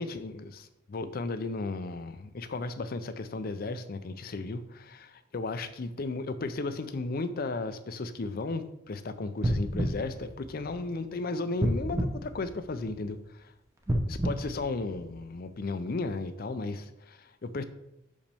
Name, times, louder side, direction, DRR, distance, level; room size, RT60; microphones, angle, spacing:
voice 1, 0.0-13.5 14.1-17.6, left 3 dB, 50° left, 11 dB, 0.5 m, -35 dB
sound 1, 9.4-11.0 11.6-13.1 13.8-15.5 16.0-16.1, equal, 15° right, 0.7 m, -31 dB
6.5 x 5.1 x 3.5 m, 0.83 s
head